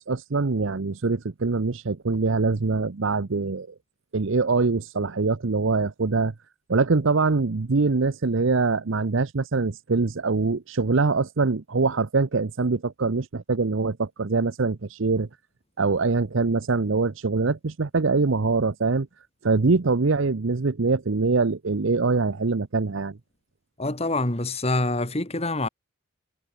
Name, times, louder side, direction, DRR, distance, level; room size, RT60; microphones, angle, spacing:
voice 1, 0.0-3.7 4.1-6.3 6.7-15.3 15.8-19.1 19.4-23.2, right 4 dB, 65° right, 0.7 m, -23 dB
voice 2, 23.8-25.7, left 2 dB, 30° left, 2.7 m, -26 dB
head